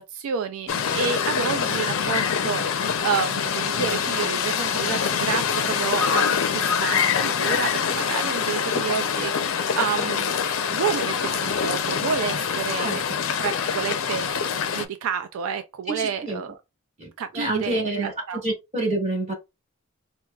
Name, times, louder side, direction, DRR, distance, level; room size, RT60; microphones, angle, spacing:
voice 1, 0.0-10.3 10.7-13.0 13.4-14.3 14.7-16.6 17.2-18.4, right 6 dB, 85° right, 0.3 m, -29 dB
sound 1, 0.7-14.8, left 7 dB, 70° left, 0.4 m, -25 dB
voice 2, 15.9-16.4 17.0-19.3, right 2 dB, 35° right, 1.7 m, -28 dB
4.4 x 2.1 x 2.3 m
head